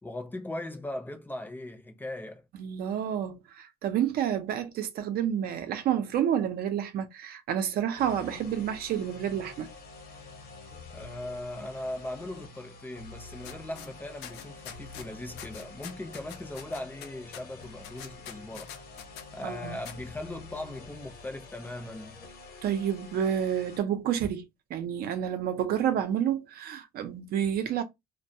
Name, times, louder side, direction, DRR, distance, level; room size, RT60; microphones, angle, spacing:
voice 1, 0.0-2.4 10.9-18.7 19.3-22.2, left 1 dB, 10° left, 0.6 m, -39 dB
voice 2, 2.6-9.7 19.4-19.8 22.6-24.4 24.7-27.8, right 9 dB, 65° right, 0.6 m, -29 dB
sound 1, 8.0-23.8, left 3 dB, 60° left, 0.9 m, -47 dB
sound 2, 13.4-13.9 14.2-15.1 15.4-19.2 19.9-20.0, left 9 dB, 90° left, 0.5 m, -44 dB
2.2 x 2.2 x 2.7 m
cardioid pair, 110°, 17 cm